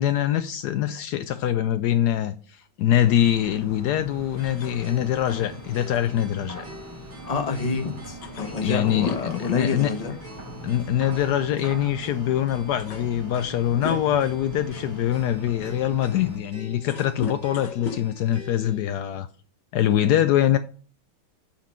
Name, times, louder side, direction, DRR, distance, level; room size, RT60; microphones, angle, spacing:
voice 1, 0.0-2.3 2.8-6.6 8.6-9.9 10.6-19.3 19.7-20.6, left 11 dB, 90° left, 0.9 m, -23 dB
sound 1, 3.0-16.4, right 1 dB, 20° right, 0.5 m, -40 dB
sound 2, 4.4-7.5 7.8-7.9 8.2-10.4 10.7-10.9 11.9-12.0 12.5-14.4 15.0-19.1, left 4 dB, 60° left, 1.5 m, -38 dB
sound 3, 4.4-18.8, equal, 75° right, 4.2 m, -46 dB
voice 2, 7.3-10.1, left 4 dB, 25° left, 1.0 m, -28 dB
8.6 x 4.3 x 5.6 m
omnidirectional pair, 2.3 m